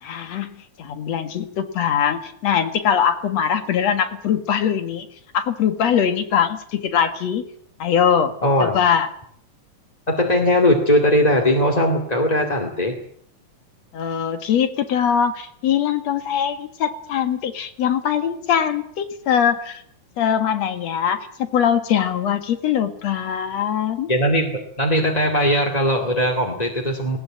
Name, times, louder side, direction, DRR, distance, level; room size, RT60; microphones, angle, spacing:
voice 1, 0.0-5.1 5.3-7.4 7.8-8.3 8.6-9.1 13.9-19.8 20.2-24.1, left 8 dB, 60° left, 9 dB, 2.8 m, -22 dB
voice 2, 8.4-8.8 10.1-13.0 24.1-27.2, left 1 dB, 15° left, 0 dB, 2.0 m, -19 dB
19.5 x 19.0 x 8.8 m, 0.65 s
omnidirectional pair, 3.5 m